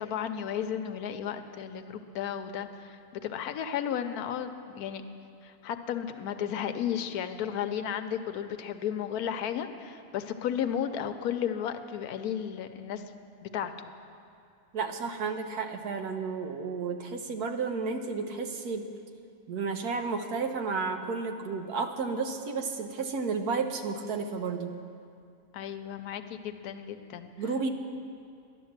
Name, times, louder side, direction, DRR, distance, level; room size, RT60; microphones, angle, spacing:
voice 1, 0.0-5.0 5.4-13.0 13.4-13.9 25.5-27.3, left 9 dB, 85° left, 9 dB, 1.2 m, -34 dB
voice 2, 14.7-18.9 19.5-24.8 27.4-27.7, right 4 dB, 85° right, 6 dB, 1.4 m, -32 dB
11.5 x 11.0 x 7.3 m, 2.4 s
omnidirectional pair, 1.6 m